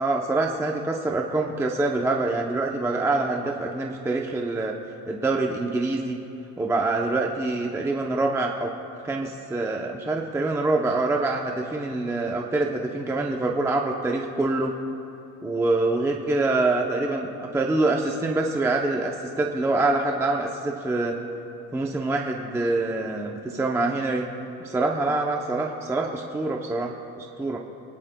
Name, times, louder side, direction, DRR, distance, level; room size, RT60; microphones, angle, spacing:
voice 1, 0.0-4.7 5.1-6.2 6.6-8.7 9.0-14.7 15.4-21.2 21.7-24.2 24.6-27.6, right 2 dB, 5° right, 0 dB, 0.6 m, -25 dB
29.0 x 10.5 x 2.2 m, 2.9 s
cardioid pair, 145°, 36 cm